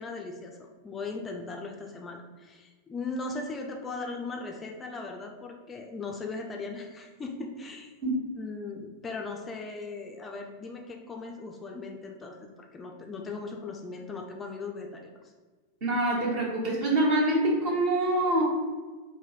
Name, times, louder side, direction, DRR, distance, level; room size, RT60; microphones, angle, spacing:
voice 1, 0.0-7.9 8.4-12.4 12.7-15.3, left 3 dB, 20° left, 1 dB, 0.4 m, -38 dB
voice 2, 15.8-18.4, right 1 dB, 45° right, -4 dB, 1.2 m, -25 dB
3.0 x 2.1 x 4.1 m, 1.4 s
figure-of-eight pair, 90°, 0 cm